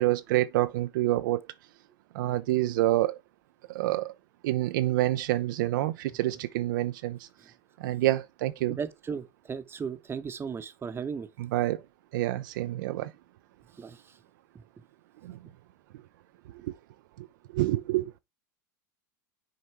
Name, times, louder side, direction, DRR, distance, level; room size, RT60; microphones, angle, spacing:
voice 1, 0.0-1.4 2.1-3.2 3.7-4.1 4.4-7.3 7.8-8.8 11.4-11.8 12.1-13.1 15.2-15.4 16.6-16.8 17.2-17.3 17.5-18.1, right 16 dB, 70° right, 0.5 m, -27 dB
voice 2, 8.8-11.3 13.8-14.0, right 6 dB, 20° right, 0.9 m, -35 dB
6.5 x 4.3 x 4.4 m
hypercardioid pair, 95°, 11 cm